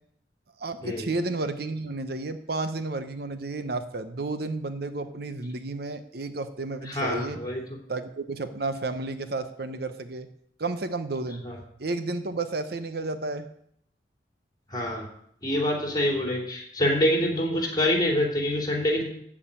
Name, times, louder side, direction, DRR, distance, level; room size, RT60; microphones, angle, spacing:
voice 1, 0.6-7.4 7.9-10.3 10.6-11.4 11.8-13.5, right 2 dB, 60° right, 10 dB, 0.8 m, -32 dB
voice 2, 6.8-7.6 11.4-11.6 14.7-15.1 15.4-19.0, left 1 dB, 20° left, 1 dB, 3.1 m, -26 dB
14.0 x 4.9 x 8.8 m, 0.70 s
head